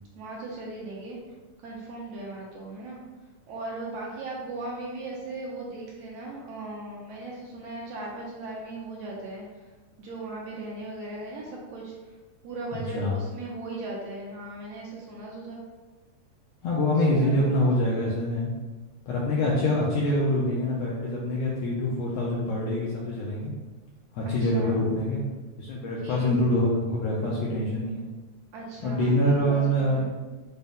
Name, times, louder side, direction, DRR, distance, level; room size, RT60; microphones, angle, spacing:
voice 1, 0.2-1.2 1.6-3.0 3.5-9.5 10.0-11.9 12.4-15.6 17.1-17.7 24.3-24.9 26.0-26.7 28.5-30.1, right 2 dB, 75° right, -3 dB, 1.6 m, -38 dB
voice 2, 12.7-13.2 16.6-18.5 19.1-23.5 24.1-25.2 25.6-28.1 28.8-30.1, left 1 dB, 80° left, -4 dB, 1.5 m, -25 dB
5.4 x 2.1 x 3.5 m, 1.2 s
omnidirectional pair, 3.4 m